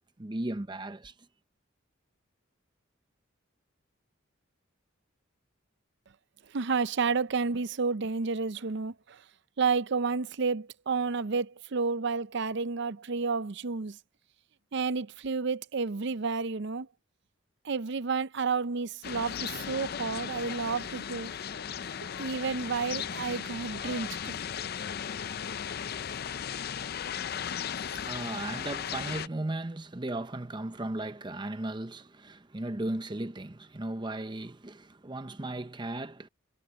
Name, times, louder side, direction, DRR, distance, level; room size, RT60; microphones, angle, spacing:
voice 1, 0.2-1.1 27.7-36.3, right 1 dB, 25° right, 0.7 m, -36 dB
voice 2, 6.5-9.2 9.6-14.0 14.7-16.9 17.6-21.3 22.2-24.3, right 4 dB, 60° right, 0.6 m, -31 dB
sound 1, 19.0-29.3, left 8 dB, 50° left, 0.5 m, -36 dB
head